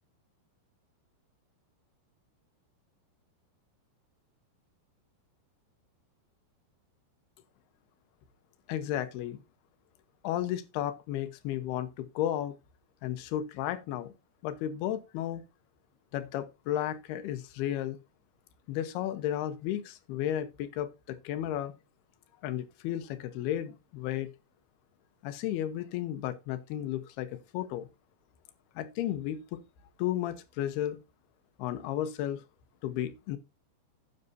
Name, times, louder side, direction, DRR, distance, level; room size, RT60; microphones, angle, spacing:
voice 1, 8.7-9.4 10.2-12.6 13.0-14.1 14.4-15.4 16.1-18.0 18.7-21.7 22.4-24.3 25.2-27.9 28.8-29.6 30.0-31.0 31.6-32.4 32.8-33.4, left 11 dB, 75° left, 2.4 m, -33 dB
17.5 x 6.7 x 2.7 m
omnidirectional pair, 5.5 m